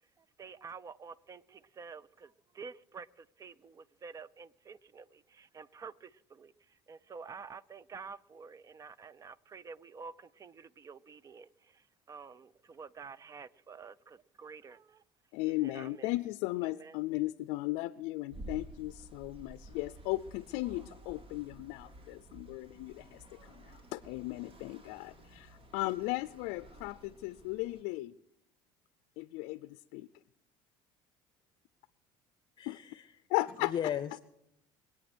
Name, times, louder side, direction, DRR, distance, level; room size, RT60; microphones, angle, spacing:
voice 1, 0.2-15.0 15.5-16.1 16.6-17.0, right 5 dB, 30° right, 0.6 m, -49 dB
voice 2, 15.3-28.2 29.2-30.1 32.7-32.8 33.3-33.7, left 19 dB, 80° left, 0.5 m, -36 dB
sound 1, 18.3-27.8, right 2 dB, 55° right, 3.1 m, -52 dB
voice 3, 32.6-33.0 33.6-34.2, left 9 dB, 40° left, 0.7 m, -35 dB
23.0 x 8.8 x 6.2 m
supercardioid pair, 95°, 11 cm